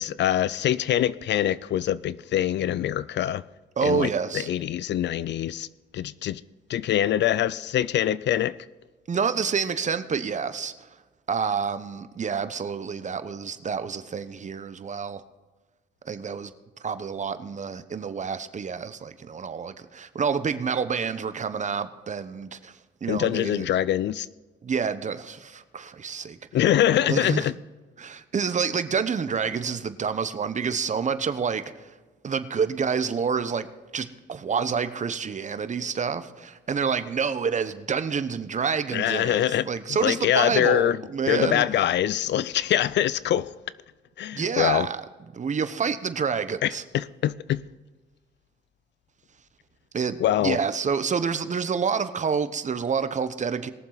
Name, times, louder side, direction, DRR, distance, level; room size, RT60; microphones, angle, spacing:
voice 1, 0.0-3.4 3.8-5.7 5.9-6.4 6.7-8.6 23.1-24.3 26.5-27.5 38.9-39.7 40.0-41.0 41.3-43.5 44.2-44.9 46.6-47.6 50.2-50.6, left 11 dB, 65° left, 0.5 m, -24 dB
voice 2, 3.8-4.5 9.1-10.7 11.3-15.2 16.0-16.5 16.8-23.7 24.6-26.4 27.0-27.5 28.0-31.9 32.2-33.7 33.9-41.6 44.3-45.0 45.3-46.8 49.9-53.7, right 6 dB, 35° right, 0.9 m, -28 dB
20.5 x 7.3 x 4.0 m
cardioid pair, 90°, 20 cm